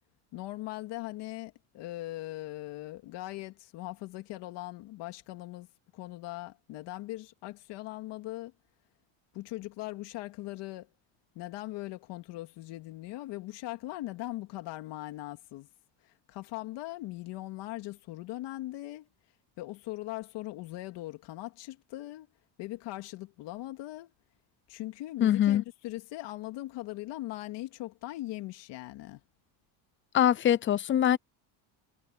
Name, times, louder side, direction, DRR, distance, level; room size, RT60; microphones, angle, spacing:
voice 1, 0.3-5.7 5.9-8.5 9.3-10.9 11.3-15.7 16.0-19.1 19.6-22.3 22.6-24.1 24.7-29.2, left 17 dB, 70° left, 2.3 m, -40 dB
voice 2, 25.2-25.6 30.1-31.2, left 11 dB, 30° left, 0.5 m, -23 dB
cardioid pair, 130°, 44 cm